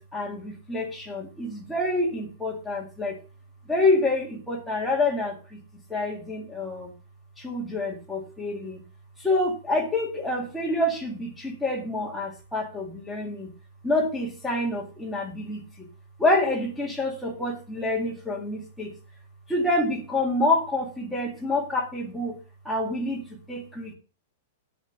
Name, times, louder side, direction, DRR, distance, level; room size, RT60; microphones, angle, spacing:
voice 1, 0.0-3.2 3.7-5.6 5.9-6.9 7.4-8.8 9.2-13.5 13.8-15.9 16.2-18.9 19.5-22.3 22.7-23.9, left 2 dB, 5° left, -2 dB, 1.9 m, -27 dB
11.0 x 8.1 x 3.3 m, 0.35 s
supercardioid pair, 180°, 0 cm